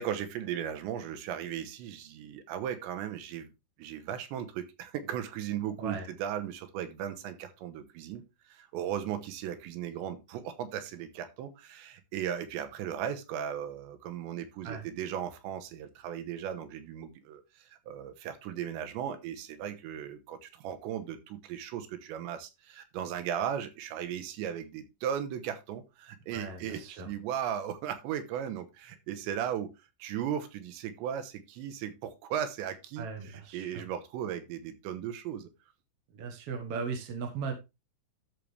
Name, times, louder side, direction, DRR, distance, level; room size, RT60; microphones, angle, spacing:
voice 1, 0.0-3.5 3.8-8.2 8.5-29.7 30.0-35.5, right 9 dB, 85° right, 8 dB, 3.3 m, -37 dB
voice 2, 26.3-27.1 33.0-33.8 36.1-37.5, right 5 dB, 65° right, 4 dB, 1.5 m, -37 dB
13.0 x 5.2 x 3.3 m, 0.24 s
omnidirectional pair, 5.1 m